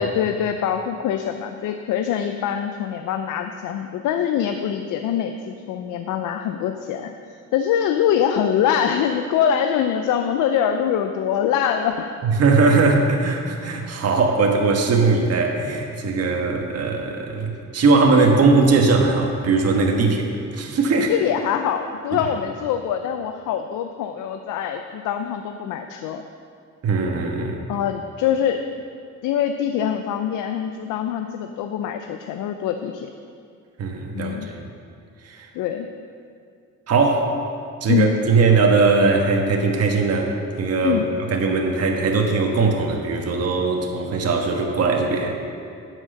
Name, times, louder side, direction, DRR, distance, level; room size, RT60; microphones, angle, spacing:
voice 1, 0.0-7.1 7.5-12.1 21.1-26.2 27.7-28.6 29.2-33.1 34.1-34.5 35.5-35.9 37.9-38.1 40.8-41.0, left 9 dB, 85° left, 7 dB, 0.5 m, -24 dB
voice 2, 12.4-21.1 26.8-27.6 33.8-34.6 35.2-35.5 36.9-37.4 37.8-40.3 40.6-41.0 41.3-45.3, right 4 dB, 55° right, 1 dB, 1.3 m, -19 dB
9.5 x 6.2 x 6.5 m, 2.4 s
cardioid pair, 90°, 30 cm